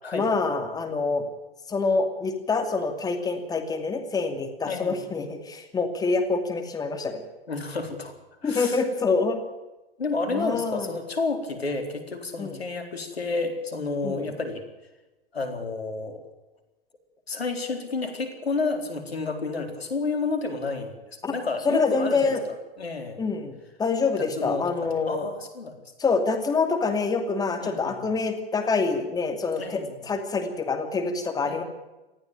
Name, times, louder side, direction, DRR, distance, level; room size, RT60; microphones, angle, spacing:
voice 1, 0.1-1.2 1.7-7.2 8.4-9.4 10.3-10.9 12.4-12.6 14.0-14.2 21.2-21.3 21.6-22.4 23.2-25.3 26.0-31.6, left 4 dB, 10° left, 5 dB, 2.6 m, -26 dB
voice 2, 4.6-5.0 7.5-8.1 8.4-8.8 10.0-14.6 15.3-16.2 17.3-23.2 24.2-25.8 27.6-28.1 29.6-30.0 31.4-31.6, left 3 dB, 85° left, 6 dB, 4.1 m, -31 dB
19.0 x 15.0 x 9.1 m, 1.1 s
hypercardioid pair, 115°, 30 cm